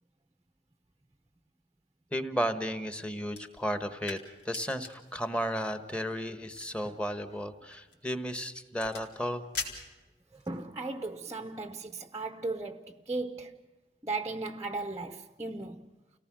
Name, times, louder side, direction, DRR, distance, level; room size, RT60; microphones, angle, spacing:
voice 1, 2.1-4.2 4.4-9.4, equal, 5° left, 1.3 m, -33 dB
sound 1, 3.3-10.6, left 4 dB, 75° left, 4.1 m, -45 dB
voice 2, 10.3-13.6 14.0-15.9, right 3 dB, 20° right, 0.8 m, -37 dB
29.5 x 18.5 x 6.2 m
head